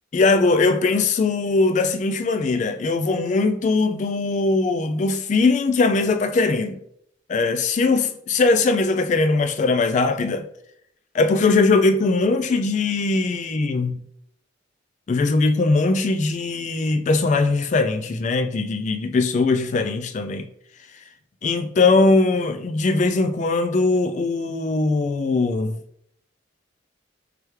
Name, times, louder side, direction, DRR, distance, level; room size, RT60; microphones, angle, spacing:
voice 1, 0.1-6.8 7.3-10.5 11.1-14.0 15.1-20.5 21.4-25.8, left 3 dB, 40° left, 0.3 m, -20 dB
4.7 x 3.3 x 3.1 m
head